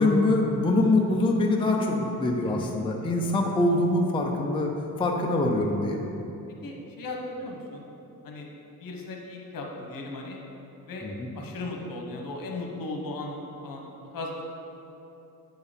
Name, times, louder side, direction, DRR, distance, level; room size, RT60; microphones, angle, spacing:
voice 1, 0.0-4.7 5.0-6.1 11.0-11.4, left 2 dB, 15° left, 0 dB, 0.5 m, -24 dB
voice 2, 6.6-7.8 8.2-8.5 8.8-10.4 10.9-11.1 11.3-13.9 14.1-14.4, left 2 dB, 65° left, 0 dB, 1.2 m, -37 dB
8.0 x 4.8 x 5.1 m, 3.0 s
cardioid pair, 145°, 37 cm